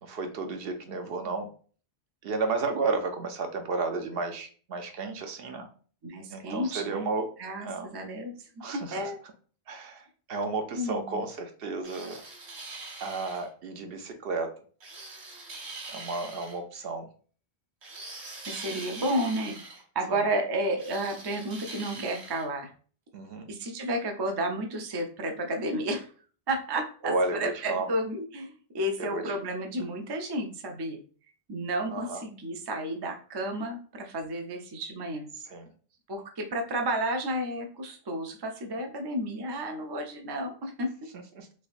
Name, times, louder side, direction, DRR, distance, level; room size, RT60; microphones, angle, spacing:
voice 1, 0.0-1.5 2.2-5.7 6.3-7.3 7.6-7.9 8.6-8.9 9.7-12.2 13.0-14.5 15.9-17.1 23.1-23.5 27.0-27.9 29.0-29.3 31.9-32.2 35.3-35.7 41.1-41.5, right 3 dB, 65° right, 6 dB, 0.8 m, -32 dB
voice 2, 6.0-7.1 7.4-8.3 8.7-9.2 10.7-11.2 18.5-19.6 19.9-22.7 23.5-26.1 26.5-31.0 31.5-35.3 36.1-40.9, right 1 dB, 35° right, 3 dB, 0.4 m, -32 dB
sound 1, 11.8-13.5 14.8-16.6 17.8-19.8 20.8-22.4, right 3 dB, 90° right, 1.2 m, -43 dB
3.4 x 3.2 x 2.4 m, 0.41 s
omnidirectional pair, 1.1 m